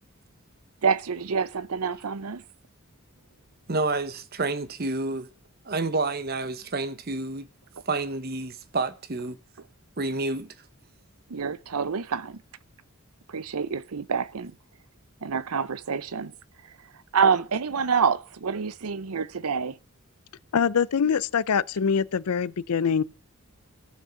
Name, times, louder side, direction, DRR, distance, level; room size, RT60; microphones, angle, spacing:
voice 1, 0.8-2.4 11.3-12.4 13.3-14.5 15.2-16.3 17.1-19.8, right 6 dB, 80° right, 0.7 m, -27 dB
voice 2, 3.7-5.3 5.7-7.5 7.9-9.4 10.0-10.5, right 3 dB, 45° right, 0.9 m, -29 dB
voice 3, 20.5-23.0, left 6 dB, 85° left, 0.5 m, -24 dB
15.0 x 6.4 x 5.7 m
head